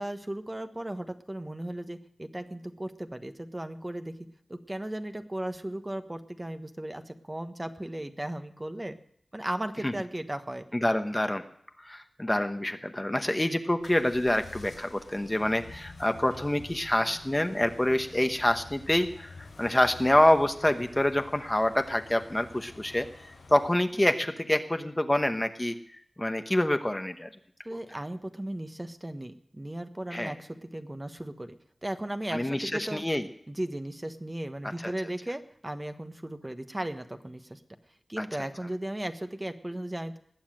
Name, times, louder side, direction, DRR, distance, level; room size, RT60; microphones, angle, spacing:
voice 1, 0.0-4.1 4.5-9.0 9.3-10.6 27.6-31.5 31.8-33.0 33.5-37.6 38.1-40.2, right 1 dB, 25° right, 7 dB, 1.2 m, -36 dB
voice 2, 10.7-11.4 11.8-25.7 26.2-27.3 30.1-30.3 32.3-33.2 34.8-34.9 38.2-38.5, left 1 dB, 20° left, 7 dB, 1.0 m, -26 dB
sound 1, 13.8-24.0, left 3 dB, 85° left, 5.3 m, -49 dB
19.5 x 7.4 x 7.6 m, 0.69 s
cardioid pair, 45°, 0 cm